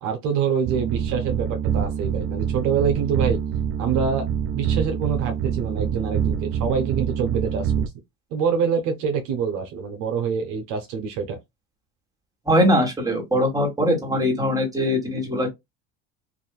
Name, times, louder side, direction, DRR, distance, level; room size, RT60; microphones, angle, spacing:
voice 1, 0.0-3.4 3.8-4.3 4.5-7.7 8.3-11.4, right 6 dB, 65° right, 0.9 m, -25 dB
sound 1, 0.7-7.9, right 8 dB, 45° right, 0.4 m, -26 dB
voice 2, 12.5-15.5, equal, 10° right, 1.7 m, -21 dB
2.9 x 2.7 x 2.3 m
supercardioid pair, 95°, 32 cm